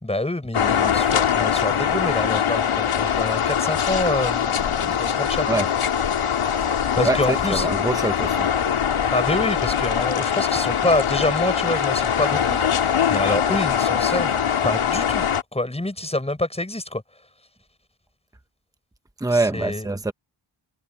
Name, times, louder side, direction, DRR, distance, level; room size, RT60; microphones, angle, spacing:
voice 1, 0.0-5.5 7.0-7.7 9.1-12.6 13.1-14.3 14.6-17.0 19.3-19.9, left 1 dB, 10° left, 5.4 m, -26 dB
sound 1, 0.5-15.4, left 8 dB, 90° left, 2.5 m, -22 dB
voice 2, 7.0-8.5 19.2-20.1, right 2 dB, 5° right, 1.1 m, -24 dB
wide cardioid pair, 145°, 49 cm